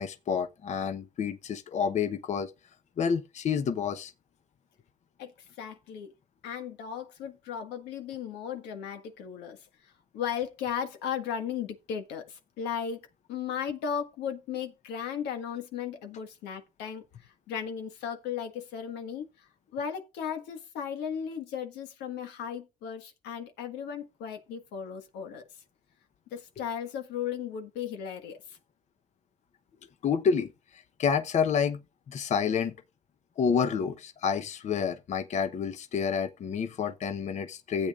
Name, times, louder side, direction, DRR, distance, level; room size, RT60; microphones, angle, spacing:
voice 1, 0.0-2.5 3.0-4.1 30.0-30.5 30.7-31.8 32.1-32.7 33.4-37.9, left 6 dB, 45° left, 0.8 m, -29 dB
voice 2, 5.6-6.1 6.4-13.0 13.3-25.5 26.3-28.6, left 8 dB, 85° left, 1.6 m, -36 dB
15.5 x 8.3 x 2.4 m
cardioid pair, 110°, 17 cm